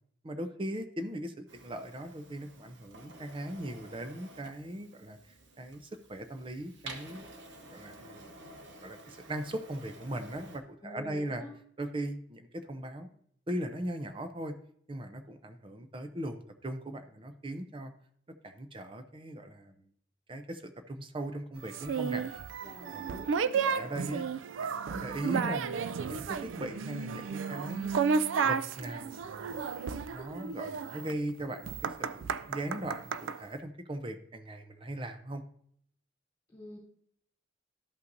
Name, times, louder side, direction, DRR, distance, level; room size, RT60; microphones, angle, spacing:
voice 1, 0.2-5.2 5.6-7.3 7.6-8.3 8.8-11.4 11.8-13.1 13.5-14.5 14.9-17.9 18.4-19.7 20.3-22.2 22.9-23.1 23.6-24.3 24.6-27.9 28.4-29.6 30.1-35.4, right 1 dB, 30° right, 8 dB, 0.6 m, -39 dB
Printer, 1.5-10.6, right 2 dB, 65° right, 1.0 m, -51 dB
voice 2, 10.8-11.6 22.6-23.6 36.5-36.8, left 1 dB, 15° left, -7 dB, 2.8 m, -47 dB
sound 1, 21.7-33.4, right 6 dB, 90° right, 0.4 m, -33 dB
12.5 x 5.6 x 2.6 m, 0.66 s
head